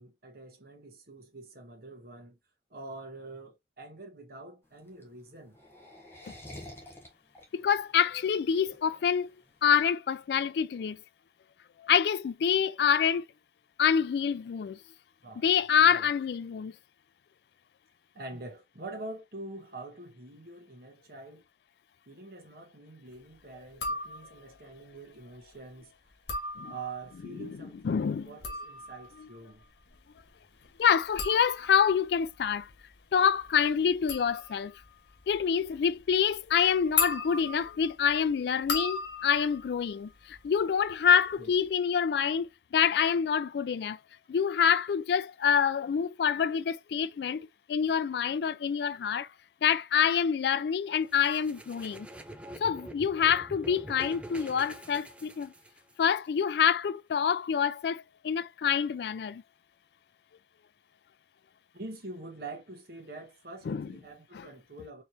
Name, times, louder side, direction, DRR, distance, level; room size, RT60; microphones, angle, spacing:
voice 1, 0.0-2.4 2.7-5.6 15.2-15.5 15.9-16.1 18.1-21.4 22.1-25.9 26.6-29.6 41.4-41.5 61.7-65.0, right 2 dB, 60° right, 1.4 m, -45 dB
sound 1, 4.6-9.8, left 1 dB, 15° left, 1.3 m, -49 dB
voice 2, 7.5-9.3 9.6-11.0 11.8-13.2 13.8-14.8 15.4-16.7 26.6-26.7 27.4-28.3 30.8-32.7 33.1-34.7 35.3-44.0 44.3-49.3 49.6-52.1 52.6-55.5 56.0-59.4 63.7-63.9 64.3-64.5, left 7 dB, 65° left, 0.3 m, -26 dB
sound 2, 23.7-24.5 26.1-27.2 28.2-40.9 41.2-41.7, left 4 dB, 90° left, 1.4 m, -38 dB
sound 3, 51.1-56.0, right 1 dB, 5° right, 0.5 m, -45 dB
4.5 x 3.2 x 2.7 m
head